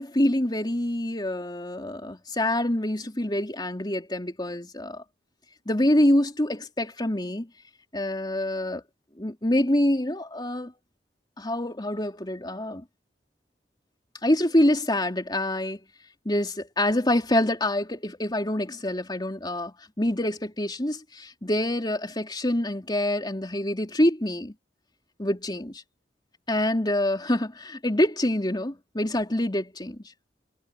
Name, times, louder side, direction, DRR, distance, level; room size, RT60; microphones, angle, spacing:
voice 1, 0.0-5.0 5.6-7.5 7.9-8.8 9.2-10.7 11.4-12.8 14.2-15.8 16.2-24.5 25.2-25.8 26.5-30.0, left 1 dB, 25° left, 3.4 m, -26 dB
head